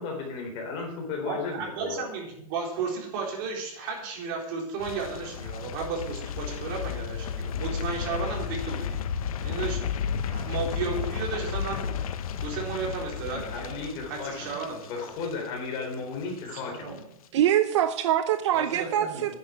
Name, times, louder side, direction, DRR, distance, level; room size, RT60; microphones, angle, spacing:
voice 1, 0.0-2.0 13.3-14.5 14.9-17.0, left 4 dB, 30° left, 2 dB, 3.8 m, -34 dB
voice 2, 1.2-9.0 9.4-9.8 10.2-12.0 12.4-14.9 16.5-17.1 18.5-19.4, right 4 dB, 35° right, -1 dB, 4.0 m, -34 dB
sound 1, 4.8-15.9 16.2-16.6 16.9-17.0, left 7 dB, 85° left, 1.1 m, -33 dB
voice 3, 17.3-19.4, right 11 dB, 55° right, 10 dB, 0.8 m, -24 dB
10.5 x 7.9 x 9.6 m, 0.75 s
supercardioid pair, 175°, 18 cm